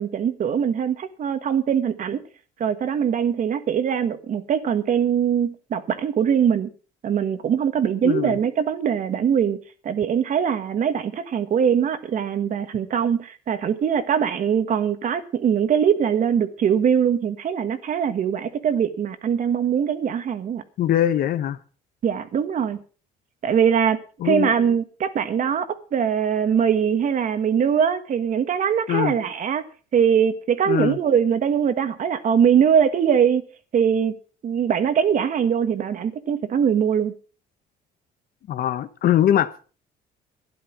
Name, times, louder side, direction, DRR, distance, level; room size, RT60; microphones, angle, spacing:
voice 1, 0.0-2.2 2.6-6.7 7.0-9.6 9.8-20.6 22.0-22.8 23.4-24.0 24.2-29.6 29.9-33.4 33.7-34.1 34.4-37.1, right 8 dB, 50° right, 1.5 m, -22 dB
voice 2, 8.0-8.4 20.8-21.6 24.2-24.5 28.9-29.1 30.7-31.0 38.5-39.7, left 11 dB, 60° left, 1.1 m, -22 dB
12.0 x 10.0 x 6.1 m
cardioid pair, 110°, 17 cm